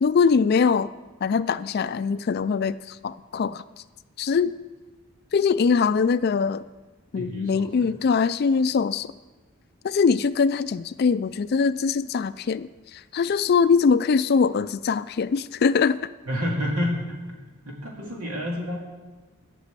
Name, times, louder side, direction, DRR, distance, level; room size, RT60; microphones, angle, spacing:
voice 1, 0.0-0.9 1.2-3.6 4.2-4.5 5.3-6.6 7.1-9.1 9.8-16.0, left 5 dB, 45° left, 15 dB, 0.3 m, -22 dB
voice 2, 7.1-7.9 16.3-17.0 17.7-18.8, left 1 dB, 90° right, -1 dB, 2.5 m, -29 dB
11.5 x 6.1 x 8.2 m, 1.2 s
head